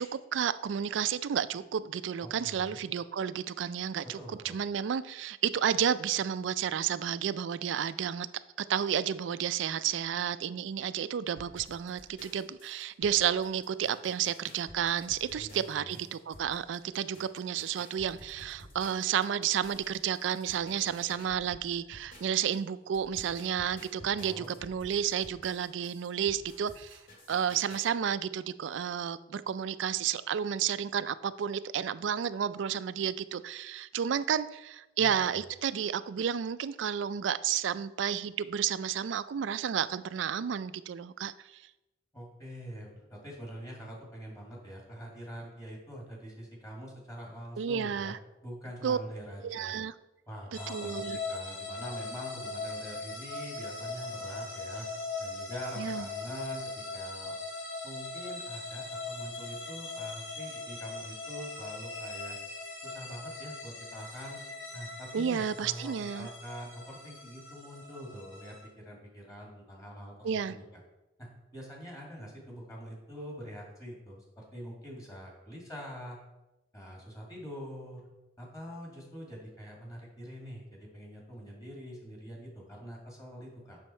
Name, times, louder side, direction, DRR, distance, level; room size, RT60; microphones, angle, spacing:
voice 1, 0.0-4.2 4.4-8.3 8.6-27.0 27.3-41.3 47.6-48.2 48.8-49.0 49.4-49.9 50.7-51.2 55.8-56.1 65.1-66.3 70.2-70.6, right 8 dB, 75° right, 0.3 m, -31 dB
voice 2, 2.2-2.8 4.0-4.6 15.3-16.0 24.2-24.5 35.0-35.4 42.1-48.1 48.4-49.7 50.3-54.9 55.2-57.4 57.8-62.4 62.8-64.4 64.7-70.6 71.2-71.3 71.5-76.2 76.7-78.1 78.4-83.8, equal, 20° left, 2.2 m, -44 dB
sound 1, 11.4-22.6 22.9-27.9, left 1 dB, 45° left, 1.9 m, -52 dB
sound 2, 50.5-68.7, left 3 dB, 90° left, 1.5 m, -40 dB
7.4 x 6.1 x 4.4 m
head